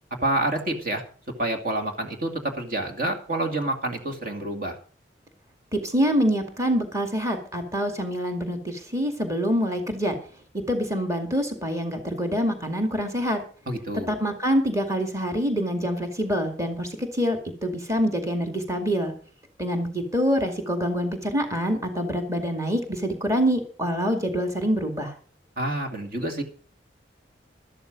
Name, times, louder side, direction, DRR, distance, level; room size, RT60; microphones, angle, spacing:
voice 1, 0.2-1.0 1.4-4.8 13.7-14.1 25.6-26.4, right 1 dB, 50° right, 4 dB, 2.3 m, -28 dB
voice 2, 5.7-10.2 10.7-13.4 14.1-19.1 19.6-25.1, equal, 15° right, 5 dB, 2.2 m, -25 dB
13.0 x 13.0 x 5.2 m, 0.42 s
head